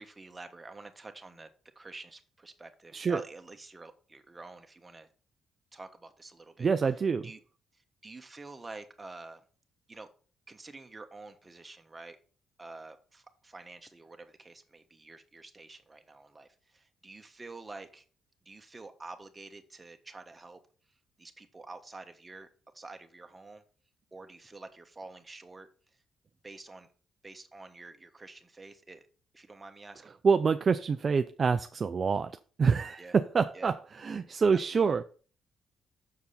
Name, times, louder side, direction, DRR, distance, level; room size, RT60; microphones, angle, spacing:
voice 1, 0.0-1.5 1.7-5.1 5.7-6.7 7.2-7.4 8.0-9.4 9.9-10.1 10.5-12.2 12.6-18.0 18.4-20.6 21.2-22.5 22.7-23.6 24.1-25.7 26.4-26.9 27.2-29.0 29.3-30.1 33.0-33.1 33.5-33.7 34.7-34.8, right 3 dB, 20° right, 1.2 m, -48 dB
voice 2, 6.6-7.3 30.2-32.3 32.6-35.0, right 5 dB, 40° right, 0.4 m, -26 dB
6.8 x 4.7 x 5.7 m
cardioid pair, 90°, 0 cm